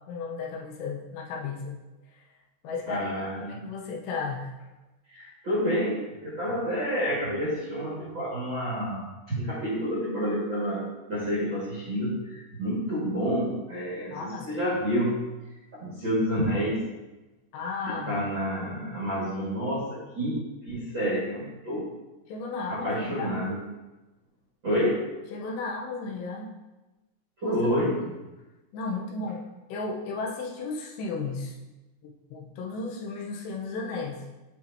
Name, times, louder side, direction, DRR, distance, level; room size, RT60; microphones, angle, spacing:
voice 1, 0.1-1.8 2.1-2.3 2.6-3.1 3.4-4.5 14.1-14.6 17.5-18.2 22.3-23.3 25.3-26.5 27.4-27.6 27.9-28.1 28.7-31.5 32.0-34.2, left 4 dB, 80° left, -1 dB, 3.0 m, -34 dB
voice 2, 2.9-3.6 5.1-15.2 15.8-16.8 17.9-21.9 22.7-23.7 24.6-25.0 27.4-27.9, equal, 45° right, -8 dB, 1.6 m, -29 dB
8.3 x 5.3 x 2.8 m, 1.1 s
omnidirectional pair, 4.9 m